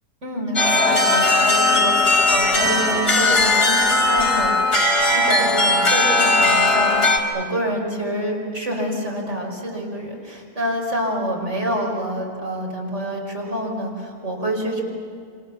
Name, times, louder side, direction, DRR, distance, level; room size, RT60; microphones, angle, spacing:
voice 1, 0.2-4.6 5.0-14.8, equal, 45° right, -1 dB, 5.8 m, -27 dB
sound 1, 0.6-7.2, left 2 dB, 45° left, 3.2 m, -18 dB
27.5 x 26.5 x 7.3 m, 2.3 s
omnidirectional pair, 1.7 m